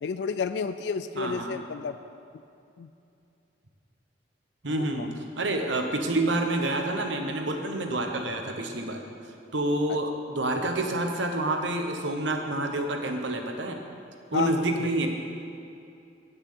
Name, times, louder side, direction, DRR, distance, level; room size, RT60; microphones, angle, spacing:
voice 1, 0.0-2.0 2.8-2.9 4.7-5.1 9.9-10.0 14.3-14.8, left 5 dB, 65° left, 10 dB, 0.3 m, -31 dB
voice 2, 1.2-1.6 4.6-9.0 9.5-13.8 14.3-15.1, right 2 dB, 85° right, 4 dB, 1.0 m, -28 dB
8.7 x 6.8 x 7.5 m, 2.6 s
head